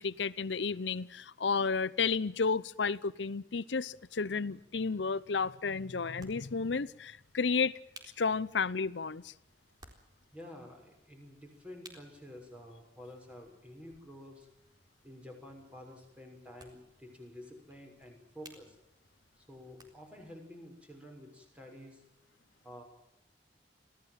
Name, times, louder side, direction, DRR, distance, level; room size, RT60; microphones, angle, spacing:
voice 1, 0.0-7.7 8.2-9.3, left 5 dB, 90° left, 17 dB, 0.7 m, -32 dB
sound 1, 3.9-20.3, right 2 dB, 25° right, 4.0 m, -62 dB
voice 2, 10.3-14.5 15.0-18.8 19.4-22.0 22.6-22.8, left 1 dB, 5° right, 2 dB, 6.2 m, -50 dB
25.5 x 16.0 x 7.6 m, 0.82 s
head